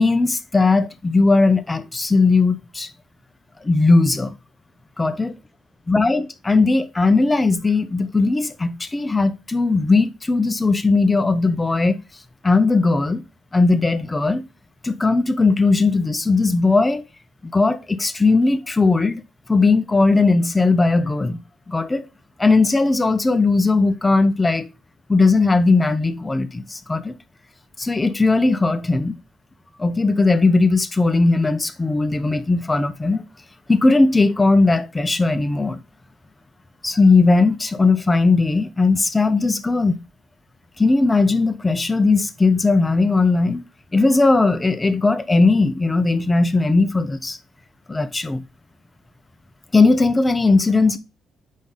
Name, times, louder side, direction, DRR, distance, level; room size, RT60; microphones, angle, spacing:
voice 1, 0.0-2.9 3.6-4.3 5.0-5.3 5.9-12.0 12.4-13.2 13.5-14.4 14.8-17.0 17.5-19.2 19.5-21.4 21.7-22.1 22.4-24.7 25.1-27.1 27.8-29.2 29.8-33.2 33.7-35.8 36.8-40.0 40.8-43.6 43.9-47.4 47.9-48.4 49.7-51.0, left 3 dB, 20° left, 0.8 m, -18 dB
7.0 x 5.2 x 3.9 m
cardioid pair, 90°, 0 cm